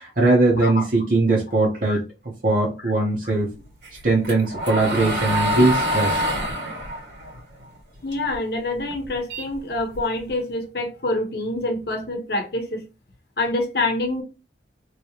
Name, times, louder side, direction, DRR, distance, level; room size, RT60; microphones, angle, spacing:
voice 1, 0.0-2.0 2.4-3.5 4.0-6.2, right 2 dB, 50° right, 0.9 m, -20 dB
sound 1, 3.8-8.4 8.7-10.3, equal, 90° right, 1.7 m, -26 dB
voice 2, 8.0-12.8 13.4-14.2, left 2 dB, 60° left, 0.8 m, -26 dB
3.2 x 2.9 x 2.8 m
head